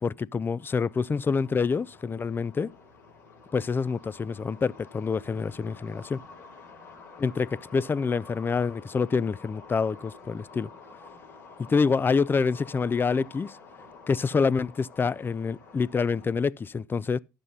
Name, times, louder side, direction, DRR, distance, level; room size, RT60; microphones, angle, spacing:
voice 1, 0.0-2.7 3.5-6.2 7.2-10.7 11.7-13.6 14.1-17.2, left 5 dB, 20° left, 0.4 m, -27 dB
sound 1, 0.6-16.3, left 4 dB, 80° left, 3.3 m, -49 dB
12.0 x 7.6 x 3.9 m
figure-of-eight pair, 55°, 10 cm